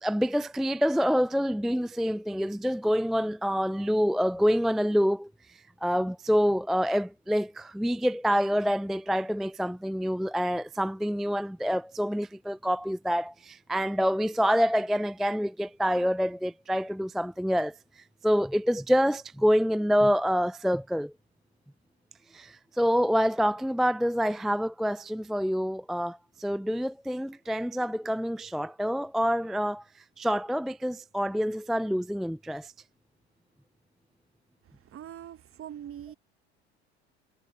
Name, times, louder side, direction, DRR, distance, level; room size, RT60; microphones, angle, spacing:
voice 1, 0.0-21.1 22.3-29.8 30.2-32.7, equal, ahead, 0.4 m, -27 dB
voice 2, 34.9-36.1, right 10 dB, 40° right, 1.4 m, -42 dB
hypercardioid pair, 75°, 34 cm